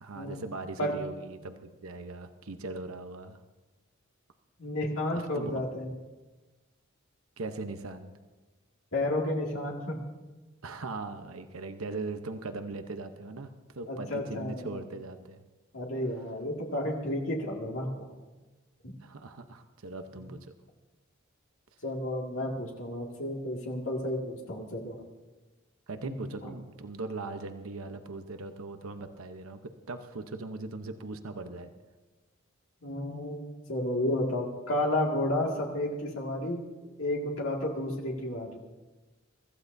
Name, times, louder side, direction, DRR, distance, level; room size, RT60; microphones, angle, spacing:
voice 1, 0.0-3.4 5.1-5.5 7.4-8.1 10.6-15.4 19.0-20.5 25.9-31.7, right 3 dB, 90° right, 7 dB, 0.8 m, -39 dB
voice 2, 4.6-5.9 8.9-10.0 13.9-14.8 15.7-18.1 18.8-18.9 20.2-20.3 21.8-25.0 26.0-26.3 32.8-33.4 33.7-36.6 37.0-38.6, left 1 dB, 70° left, -1 dB, 2.0 m, -32 dB
24.0 x 14.5 x 2.7 m, 1.2 s
head